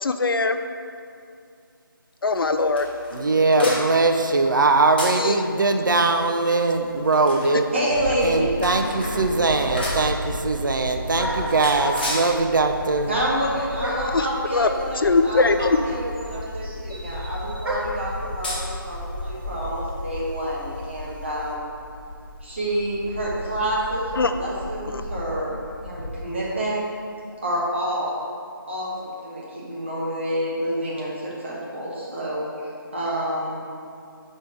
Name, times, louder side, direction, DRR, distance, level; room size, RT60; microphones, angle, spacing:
voice 1, 0.0-0.6 2.2-2.9 3.6-3.7 5.1-5.4 13.9-14.7 15.0-15.8 24.1-24.3 24.9-25.0, left 3 dB, 75° left, 9 dB, 0.4 m, -21 dB
sound 1, 2.2-21.5, left 1 dB, 25° left, 0.9 m, -38 dB
voice 2, 3.1-7.7 8.2-13.1, right 3 dB, 60° right, 5 dB, 0.5 m, -21 dB
voice 3, 7.7-8.5 9.3-9.4 13.1-21.6 22.4-25.6 25.8-26.8 27.4-28.3 28.7-33.6, equal, 30° right, -6 dB, 1.2 m, -28 dB
Bird / Wind, 7.9-26.2, left 1 dB, 10° left, 0.3 m, -35 dB
sound 2, 9.7-10.2 11.2-12.3 13.8-14.2 15.2-15.3 15.5-18.1, right 1 dB, 85° right, 1.4 m, -31 dB
4.7 x 4.4 x 4.9 m, 2.4 s
figure-of-eight pair, 175°, 12 cm